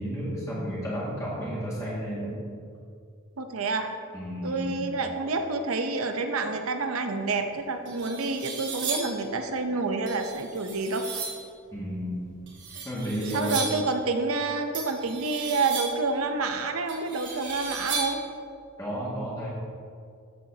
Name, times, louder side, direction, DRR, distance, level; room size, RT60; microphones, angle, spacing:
voice 1, 0.0-2.4 4.1-4.8 11.7-12.3 12.8-13.6 18.8-19.5, equal, 15° left, -8 dB, 2.0 m, -32 dB
voice 2, 3.4-3.9 4.4-11.2 12.8-12.9 13.3-18.2, right 3 dB, 90° right, 6 dB, 0.8 m, -28 dB
sound 1, 7.3-7.4 7.8-9.2 10.1-11.5 12.5-13.9 14.7-16.1 16.9-18.3, right 4 dB, 55° right, 2.5 m, -35 dB
13.5 x 7.0 x 2.9 m, 2.3 s
head